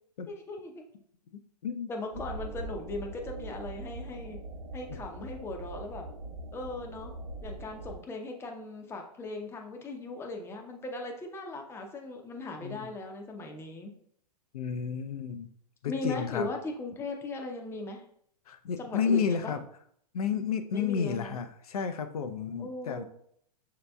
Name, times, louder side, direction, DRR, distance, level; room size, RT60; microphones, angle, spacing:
voice 1, 0.3-0.8 1.9-4.4 4.7-6.1 6.5-7.1 7.4-13.9 15.9-18.0 18.8-19.5 20.7-21.4 22.6-23.0, left 2 dB, 10° left, 2 dB, 0.6 m, -38 dB
sound 1, 2.1-8.0, right 2 dB, 30° right, 1.1 m, -42 dB
voice 2, 14.5-15.5 15.8-16.5 18.5-19.6 20.1-23.0, left 6 dB, 65° left, 9 dB, 0.6 m, -31 dB
6.5 x 2.9 x 2.2 m, 0.66 s
figure-of-eight pair, 110°, 20 cm